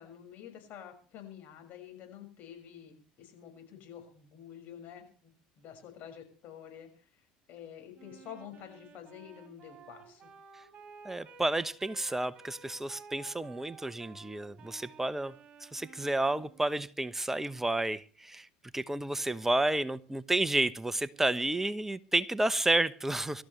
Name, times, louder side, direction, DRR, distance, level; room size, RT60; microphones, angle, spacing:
voice 1, 0.0-7.2 7.5-10.3, left 9 dB, 55° left, 6.2 m, -49 dB
Wind instrument woodwind instrument, 7.9-16.8, right 6 dB, 35° right, 5.8 m, -54 dB
voice 2, 11.0-15.3 15.6-18.5 18.7-23.4, right 2 dB, 10° right, 1.0 m, -31 dB
24.5 x 13.5 x 3.3 m
hypercardioid pair, 80°, 3 cm